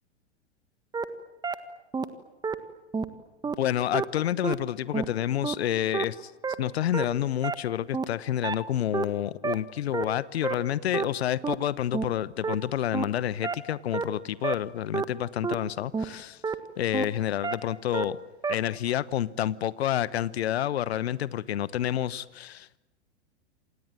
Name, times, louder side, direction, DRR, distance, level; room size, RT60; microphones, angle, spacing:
sound 1, 0.9-1.0 1.4-1.5 1.9-2.0 2.4-2.5 2.9-3.1 3.4-3.5 3.9-4.0 4.4-4.5 4.9-5.1 5.4-5.5 5.9-6.0 6.4-6.5 6.9-7.0 7.4-7.5 7.9-8.0 8.4-8.5 8.9-9.0 9.4-9.5 9.9-10.0 10.4-10.5 10.9-11.0 11.4-11.5 11.9-12.1 12.4-12.5 12.9-13.0 13.4-13.5 13.9-14.0 14.4-14.5 14.9-15.0 15.4-15.5 15.9-16.1 16.4-16.5 16.9-17.0 17.4-17.5 17.9-18.0 18.4-18.5, right 5 dB, 10° right, 1.5 m, -28 dB
voice 1, 3.6-6.3 6.6-16.4 16.8-18.2 18.5-22.8, left 11 dB, 65° left, 19 dB, 1.1 m, -29 dB
27.5 x 27.5 x 7.6 m, 1.0 s
figure-of-eight pair, 100°, 35 cm